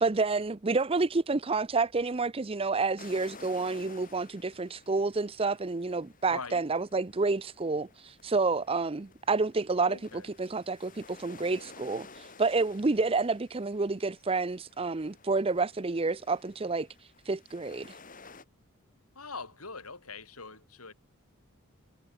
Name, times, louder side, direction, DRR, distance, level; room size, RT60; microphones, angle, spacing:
voice 1, 0.0-7.9 8.2-12.1 12.4-16.9 17.3-17.9, right 3 dB, 25° right, 0.6 m, -29 dB
sound 1, 3.0-18.4, left 4 dB, 40° left, 6.7 m, -54 dB
voice 2, 6.2-6.6 9.8-10.3 19.1-20.9, left 4 dB, 85° left, 7.7 m, -42 dB
head